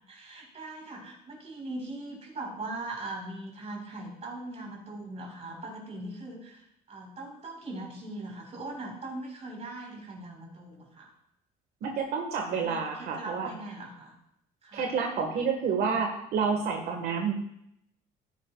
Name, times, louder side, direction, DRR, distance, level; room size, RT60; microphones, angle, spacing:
voice 1, 0.1-11.1 11.8-12.1 12.5-14.2 14.6-14.9, right 2 dB, 40° right, -1 dB, 4.5 m, -40 dB
voice 2, 11.8-13.5 14.7-17.3, right 5 dB, 70° right, 2 dB, 1.6 m, -29 dB
15.5 x 10.5 x 2.4 m, 0.79 s
cardioid pair, 110°, 17 cm